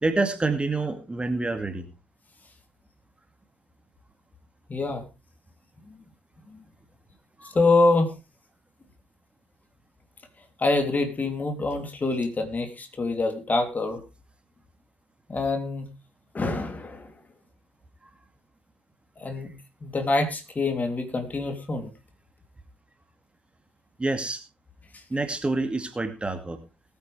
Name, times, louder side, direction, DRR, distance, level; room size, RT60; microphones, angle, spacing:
voice 1, 0.0-1.9 7.4-7.5 24.0-24.4 25.1-26.6, right 3 dB, 20° right, 7 dB, 2.2 m, -27 dB
voice 2, 4.7-5.0 7.5-8.1 10.6-14.0 15.3-15.9 16.3-17.1 19.2-19.5 19.8-21.9, left 3 dB, 30° left, 6 dB, 3.2 m, -25 dB
20.5 x 9.2 x 3.4 m, 0.29 s
figure-of-eight pair, 40°, 5 cm